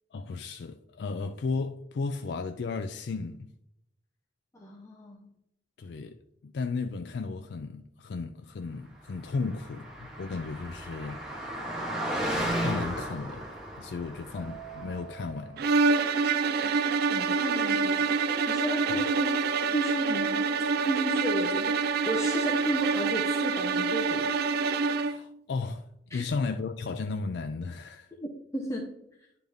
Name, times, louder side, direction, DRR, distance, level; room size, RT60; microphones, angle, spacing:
voice 1, 0.1-3.5 5.8-11.2 12.6-13.5 13.8-15.6 18.9-19.0 24.9-28.1, left 4 dB, 70° left, 0.4 m, -34 dB
voice 2, 4.5-5.3 16.6-16.7 17.1-20.4 20.8-24.3 26.1-26.3 28.2-28.9, right 1 dB, 15° left, 0.8 m, -34 dB
Car passing by, 9.2-15.2, right 1 dB, 5° right, 1.4 m, -34 dB
Keyboard (musical), 14.3-16.8, right 13 dB, 25° right, 2.3 m, -49 dB
sound 1, 15.6-25.3, right 4 dB, 60° right, 0.3 m, -26 dB
10.0 x 3.9 x 3.5 m
head